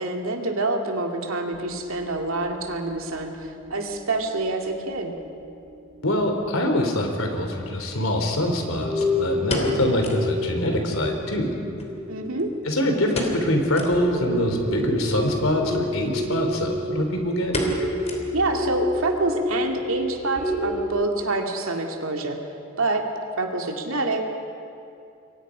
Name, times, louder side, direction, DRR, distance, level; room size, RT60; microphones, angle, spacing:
voice 1, 0.0-5.1 12.1-12.5 18.3-22.4 22.8-23.0 23.4-24.2, right 2 dB, 75° right, 2 dB, 2.5 m, -26 dB
sound 1, 1.5-5.5 5.9-6.0 7.1-7.2 7.7-7.8 8.3-8.5 8.7-20.9, left 1 dB, ahead, 3.3 m, -30 dB
voice 2, 6.0-11.5 12.7-17.5, left 1 dB, 75° left, 3 dB, 3.5 m, -24 dB
sound 2, 9.0-10.3 10.7-10.8 11.0-11.1 11.8-12.6 13.1-13.5 13.7-14.0 14.5-14.6 15.6-15.8 16.2-16.3 16.6-17.0 17.5-18.6 18.9-19.0 19.6-19.9 20.2-20.3, left 1 dB, 30° left, 3.1 m, -31 dB
28.5 x 23.0 x 5.2 m, 2.6 s
head